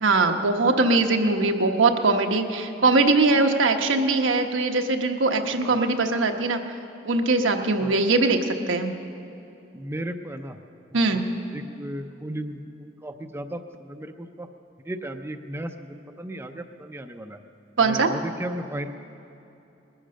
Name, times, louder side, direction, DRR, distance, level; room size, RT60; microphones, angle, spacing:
voice 1, 0.0-6.6 7.0-8.4 8.7-8.9 10.9-11.2 17.8-18.1, right 3 dB, 90° right, 4 dB, 1.0 m, -21 dB
voice 2, 9.7-10.6 11.1-11.2 11.5-14.5 14.9-17.4 17.8-19.0, right 1 dB, 15° right, 6 dB, 0.5 m, -35 dB
20.0 x 10.0 x 6.4 m, 2.8 s
head